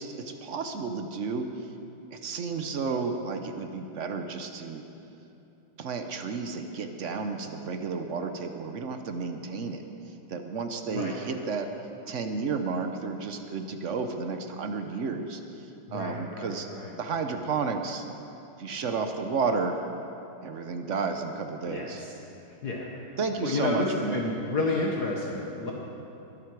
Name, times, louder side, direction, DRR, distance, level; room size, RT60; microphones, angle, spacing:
voice 1, 0.0-1.5 2.1-4.8 5.8-9.8 10.3-11.7 12.1-16.7 17.0-18.0 18.6-19.9 20.4-22.0 23.2-24.2, right 4 dB, 65° right, 6 dB, 0.7 m, -32 dB
voice 2, 15.9-16.9 21.7-22.1 22.6-22.9 23.4-25.7, left 2 dB, 55° left, -2 dB, 1.7 m, -30 dB
21.5 x 11.5 x 4.7 m, 2.9 s
omnidirectional pair, 2.3 m